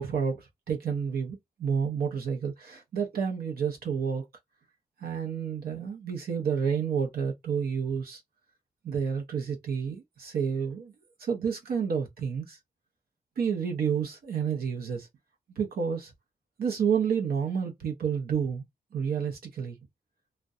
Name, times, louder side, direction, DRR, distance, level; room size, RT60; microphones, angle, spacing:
voice 1, 0.0-4.3 5.0-8.2 8.8-10.9 11.2-12.6 13.4-15.1 15.6-16.1 16.6-18.6 18.9-19.8, right 7 dB, 80° right, 0.6 m, -30 dB
2.3 x 2.1 x 2.6 m
wide cardioid pair, 125°, 16 cm